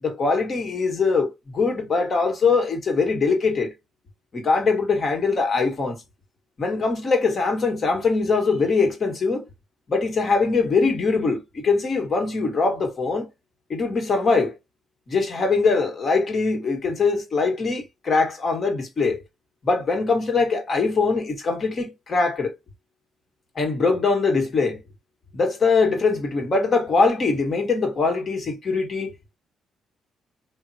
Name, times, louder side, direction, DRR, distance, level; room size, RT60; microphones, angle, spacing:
voice 1, 0.0-3.7 4.3-6.0 6.6-9.5 9.9-13.3 13.7-14.6 15.1-19.2 19.6-22.5 23.5-24.8 25.3-29.1, left 4 dB, 45° left, 1.3 m, -22 dB
3.5 x 2.1 x 2.7 m
cardioid pair, 90°, 0 cm